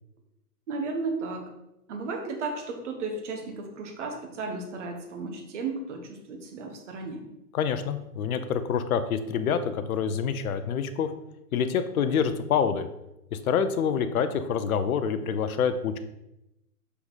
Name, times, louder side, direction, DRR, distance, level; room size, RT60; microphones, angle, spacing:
voice 1, 0.7-1.5 1.9-7.3, right 3 dB, 50° right, 4 dB, 1.3 m, -34 dB
voice 2, 7.5-11.1 11.5-12.9 13.3-16.0, left 7 dB, 65° left, 10 dB, 0.7 m, -26 dB
5.7 x 5.4 x 4.0 m, 0.88 s
hypercardioid pair, 155°, 47 cm